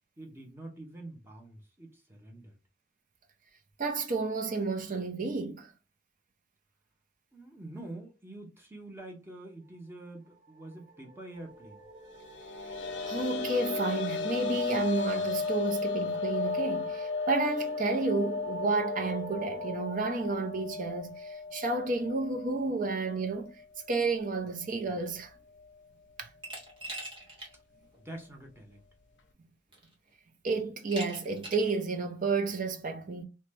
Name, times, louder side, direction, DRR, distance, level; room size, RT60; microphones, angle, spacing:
voice 1, 0.2-2.6 7.3-11.8 28.0-28.8, right 2 dB, 15° right, 0.8 m, -46 dB
voice 2, 3.8-5.7 13.1-23.6 23.9-25.3 26.2-26.3 30.4-33.2, right 3 dB, 50° right, 0.6 m, -31 dB
sound 1, 10.2-21.6, right 2 dB, 75° right, 0.9 m, -47 dB
sound 2, 12.1-23.6 23.9-24.0 25.6-25.7, left 4 dB, 75° left, 0.5 m, -35 dB
Glass, 26.4-27.5 27.9-28.0 29.2-29.3 29.7-30.1 30.9-31.7, right 1 dB, 30° right, 1.2 m, -42 dB
2.8 x 2.2 x 3.2 m
head